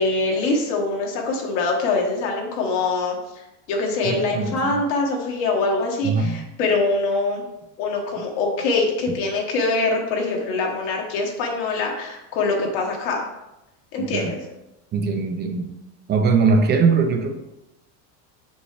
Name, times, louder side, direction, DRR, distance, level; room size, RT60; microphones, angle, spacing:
voice 1, 0.0-7.4 7.8-13.3 13.9-14.4, left 3 dB, 55° left, 0 dB, 1.4 m, -24 dB
voice 2, 4.1-4.7 6.0-6.4 14.0-14.3 14.9-15.7 16.1-17.4, right 4 dB, 20° right, 5 dB, 0.5 m, -21 dB
6.1 x 5.2 x 3.3 m, 0.93 s
supercardioid pair, 150°, 48 cm